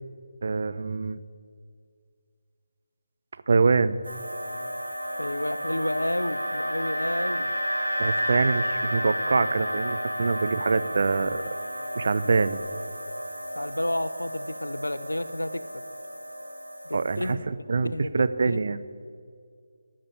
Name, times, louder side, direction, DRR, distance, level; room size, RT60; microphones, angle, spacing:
voice 1, 0.4-1.2 3.5-4.0 8.0-11.4 12.0-12.6 16.9-18.8, right 4 dB, 50° right, 13 dB, 0.6 m, -25 dB
sound 1, 4.0-17.3, equal, 75° right, 1.7 m, -32 dB
voice 2, 5.2-7.6 13.6-15.8 16.8-17.5 17.8-18.6, left 1 dB, 80° left, 14 dB, 0.8 m, -31 dB
13.5 x 8.8 x 9.5 m, 2.1 s
figure-of-eight pair, 150°, 0 cm